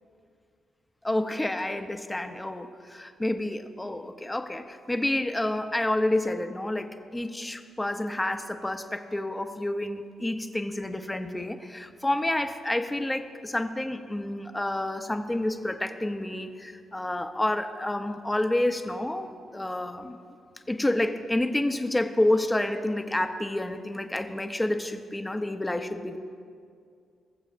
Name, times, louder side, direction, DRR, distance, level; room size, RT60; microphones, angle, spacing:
voice 1, 1.0-20.2 20.7-26.2, left 1 dB, 15° left, 8 dB, 0.7 m, -29 dB
21.5 x 7.4 x 2.5 m, 2.3 s
hypercardioid pair, 50°, 0 cm